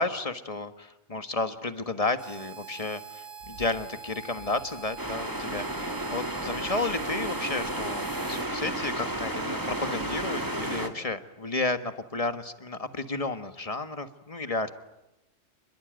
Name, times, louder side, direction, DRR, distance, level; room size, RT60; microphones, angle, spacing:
voice 1, 0.0-14.7, left 3 dB, 25° left, 9 dB, 1.5 m, -32 dB
Harmonica, 2.2-8.5, right 6 dB, 70° right, 2.1 m, -44 dB
sound 1, 3.4-7.8, right 1 dB, 85° right, 7.1 m, -54 dB
sound 2, 5.0-10.9, right 1 dB, 15° right, 2.2 m, -32 dB
29.0 x 22.0 x 9.1 m, 0.91 s
omnidirectional pair, 1.4 m